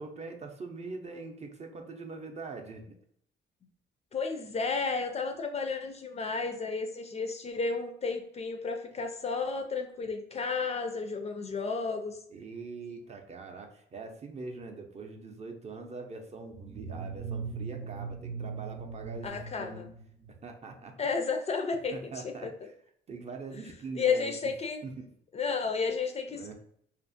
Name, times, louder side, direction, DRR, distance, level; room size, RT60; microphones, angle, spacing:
voice 1, 0.0-2.8 12.3-19.9 20.4-20.9 21.9-22.7 23.1-24.5 24.8-25.1 26.3-26.5, right 4 dB, 35° right, 3 dB, 0.5 m, -43 dB
voice 2, 4.1-12.2 19.2-19.9 21.0-22.0 22.2-22.5 23.9-24.8 25.3-26.5, left 4 dB, 35° left, 5 dB, 0.4 m, -32 dB
sound 1, 16.5-20.6, right 5 dB, 80° right, 0.6 m, -40 dB
2.5 x 2.4 x 2.5 m, 0.67 s
cardioid pair, 90°, 20 cm